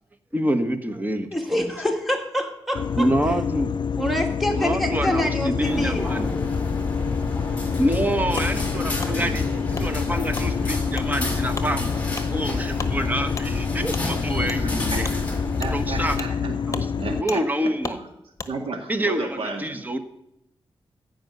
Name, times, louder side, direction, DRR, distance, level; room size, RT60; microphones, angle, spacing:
voice 1, 0.3-1.7 3.0-3.7 4.5-6.3 7.8-12.0 12.3-15.1 15.7-16.2 16.6-18.0 18.9-20.0, right 1 dB, 20° right, 8 dB, 1.3 m, -27 dB
voice 2, 1.3-3.1 4.0-6.0, left 1 dB, ahead, 2 dB, 2.2 m, -26 dB
sound 1, 2.7-17.2, left 7 dB, 55° left, 0.4 m, -27 dB
sound 2, 5.6-16.2, left 1 dB, 15° left, 2.7 m, -30 dB
Wood, 8.4-8.5 9.0-9.1 9.7-9.9 10.3-10.5 10.9-11.1 11.5-11.7 12.1-12.3 12.8-12.9 13.4-13.5 13.9-14.1 14.5-14.6 15.0-15.2 15.6-15.7 16.2-16.3 16.7-16.9 17.3-17.4 17.8-18.0 18.4-18.5, left 3 dB, 35° left, 1.1 m, -34 dB
voice 3, 14.4-15.0 15.6-17.4 18.5-19.7, right 3 dB, 80° right, 3 dB, 1.8 m, -33 dB
15.0 x 5.3 x 9.5 m, 0.82 s
wide cardioid pair, 90°, 9 cm